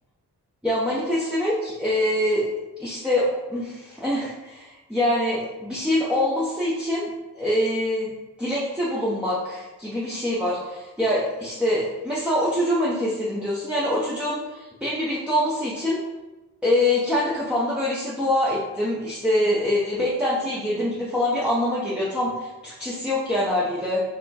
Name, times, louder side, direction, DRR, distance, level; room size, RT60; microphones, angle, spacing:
voice 1, 0.6-2.4 2.8-7.1 7.4-8.1 8.4-16.0 16.6-24.0, left 1 dB, 5° right, -7 dB, 0.9 m, -24 dB
4.2 x 2.2 x 4.2 m, 1.1 s
cardioid pair, 50°, 39 cm